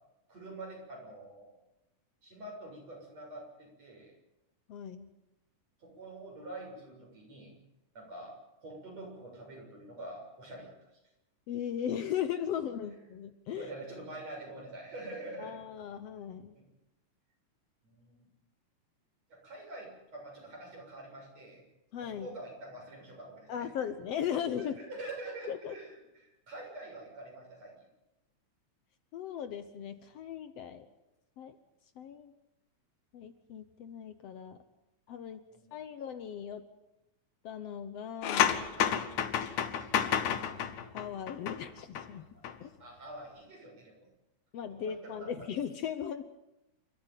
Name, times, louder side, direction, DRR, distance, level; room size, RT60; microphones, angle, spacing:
voice 1, 0.3-1.5 2.2-4.1 5.8-7.6 7.9-10.7 13.5-15.6 16.5-16.7 17.8-18.3 19.3-21.6 22.0-23.7 24.2-27.7 35.4-35.7 38.7-39.0 42.8-44.1 44.7-45.5, right 2 dB, 60° right, 0 dB, 8.2 m, -46 dB
voice 2, 4.7-5.1 11.5-13.7 15.4-16.5 21.9-22.3 23.5-24.8 25.5-25.7 29.1-30.9 31.4-31.6 32.0-32.3 33.1-34.6 35.1-35.4 35.7-36.7 37.4-38.7 40.9-42.2 42.6-42.7 44.5-46.2, left 9 dB, 65° left, 11 dB, 1.9 m, -37 dB
sound 1, 38.2-42.1 42.3-42.5, left 9 dB, 85° left, 2.7 m, -30 dB
28.5 x 14.0 x 9.1 m, 0.93 s
omnidirectional pair, 3.4 m